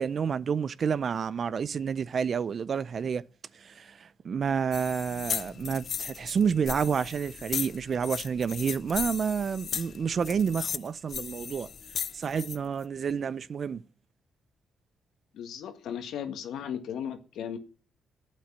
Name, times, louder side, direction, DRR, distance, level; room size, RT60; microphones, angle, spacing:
voice 1, 0.0-3.2 3.6-11.7 12.1-13.8, right 6 dB, 50° right, 0.5 m, -29 dB
sound 1, 4.7-12.6, left 7 dB, 50° left, 0.6 m, -36 dB
voice 2, 15.3-17.6, left 8 dB, 75° left, 1.7 m, -36 dB
8.8 x 7.6 x 8.9 m
cardioid pair, 90°, 0 cm